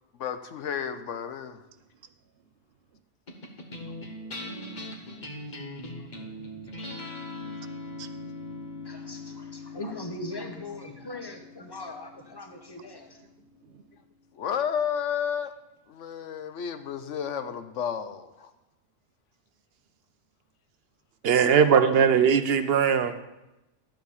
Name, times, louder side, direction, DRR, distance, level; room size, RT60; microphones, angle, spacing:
voice 1, 0.2-1.6 14.3-15.5 15.9-18.5, left 8 dB, 90° left, 10 dB, 1.1 m, -31 dB
sound 1, 3.3-13.9, left 2 dB, 40° left, 1.3 m, -41 dB
voice 2, 8.8-13.2, left 2 dB, 20° left, 4 dB, 1.1 m, -40 dB
voice 3, 21.2-23.2, right 7 dB, 60° right, 10 dB, 0.8 m, -20 dB
12.0 x 4.8 x 7.1 m, 0.95 s
omnidirectional pair, 1.2 m